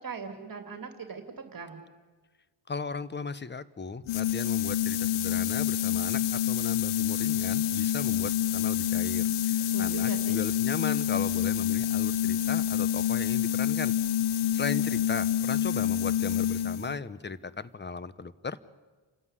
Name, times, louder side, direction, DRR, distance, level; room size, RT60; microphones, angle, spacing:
voice 1, 0.0-1.8 9.7-10.4, right 5 dB, 45° right, 6 dB, 2.7 m, -40 dB
voice 2, 2.7-13.9 14.5-18.6, left 4 dB, 20° left, 16 dB, 1.0 m, -37 dB
sound 1, 4.1-17.0, left 10 dB, 85° left, 0.8 m, -27 dB
29.5 x 13.5 x 9.8 m, 1.3 s
cardioid pair, 100°, 49 cm